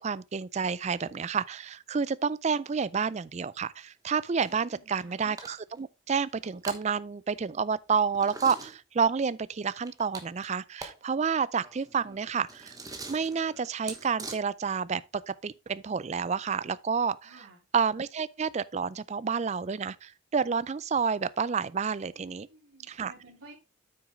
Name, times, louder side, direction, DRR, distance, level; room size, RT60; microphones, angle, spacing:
voice 1, 0.0-12.8 13.1-17.3 17.7-22.5 22.9-23.1, right 6 dB, 35° right, 0.3 m, -29 dB
sound 1, 4.1-4.6 5.0-5.1 5.4-5.8 6.3-6.8 8.1-8.7 9.8-11.0 11.3-11.4 11.6-14.4, right 3 dB, 15° right, 1.2 m, -43 dB
voice 2, 4.4-5.2 11.8-12.3 17.2-17.6 22.2-23.5, right 2 dB, 85° right, 4.0 m, -54 dB
8.7 x 6.2 x 3.6 m
head